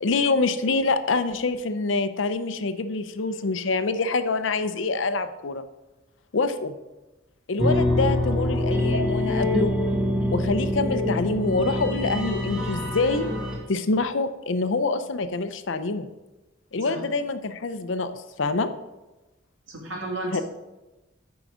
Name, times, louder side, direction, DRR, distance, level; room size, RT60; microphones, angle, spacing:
voice 1, 0.0-5.6 6.3-6.7 7.5-9.7 10.3-13.2 13.7-16.1 16.7-18.7 20.3-20.4, left 3 dB, 80° left, 10 dB, 0.6 m, -26 dB
sound 1, 7.6-13.6, left 1 dB, 5° right, 1.6 m, -25 dB
voice 2, 8.5-9.0 16.8-17.0 19.7-20.4, right 1 dB, 90° right, -1 dB, 2.2 m, -33 dB
9.1 x 4.8 x 5.0 m, 1.1 s
head